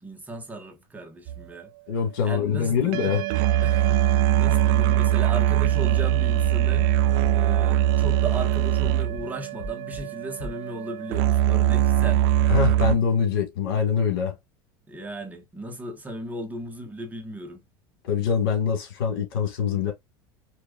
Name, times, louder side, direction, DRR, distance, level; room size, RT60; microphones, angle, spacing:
voice 1, 0.0-1.7 2.2-3.2 3.6-6.9 7.3-12.2 14.9-17.6, right 2 dB, 15° right, 1.3 m, -36 dB
sound 1, 1.3-1.4 2.9-12.9, right 12 dB, 70° right, 0.5 m, -22 dB
voice 2, 1.9-3.2 12.5-14.3 18.0-19.9, left 7 dB, 85° left, 2.0 m, -24 dB
sound 2, 5.6-6.1 6.4-6.9 7.2-7.7 8.0-8.5 8.8-9.3 9.6-10.1 10.4-10.5, equal, 65° left, 2.2 m, -36 dB
4.5 x 3.2 x 2.4 m
supercardioid pair, 115°, 12 cm